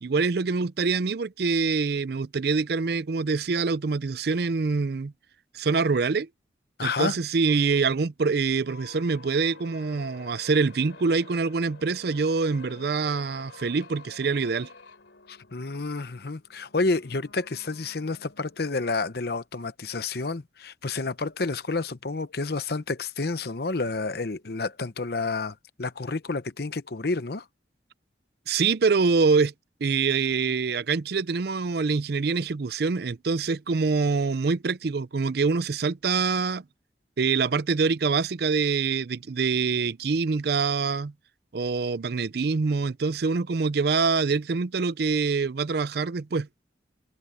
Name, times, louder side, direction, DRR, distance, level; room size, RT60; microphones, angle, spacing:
voice 1, 0.0-5.1 5.5-6.3 6.8-14.7 28.5-29.5 29.8-36.6 37.2-41.1 41.5-46.5, right 4 dB, 55° right, 0.5 m, -25 dB
voice 2, 6.8-7.2 15.3-27.4, left 3 dB, 55° left, 0.8 m, -30 dB
sound 1, 8.6-18.9, left 3 dB, 85° left, 3.3 m, -49 dB
head